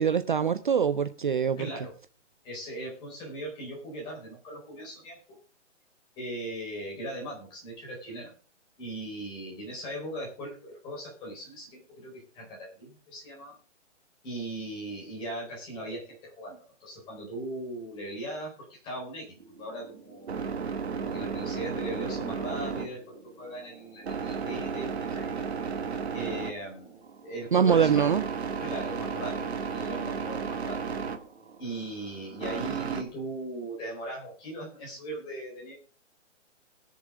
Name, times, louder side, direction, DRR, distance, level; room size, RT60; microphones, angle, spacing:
voice 1, 0.0-1.6 27.5-28.2, right 7 dB, 45° right, 0.5 m, -23 dB
voice 2, 1.6-1.9 2.4-5.4 6.2-8.3 8.8-13.6 14.2-20.3 20.9-25.3 26.1-26.9 27.2-28.1 28.6-30.9 31.6-35.7, right 1 dB, 15° left, 4.5 m, -39 dB
sound 1, 19.4-33.0, right 5 dB, 60° right, 2.1 m, -34 dB
21.5 x 7.2 x 3.8 m
hypercardioid pair, 175°, 36 cm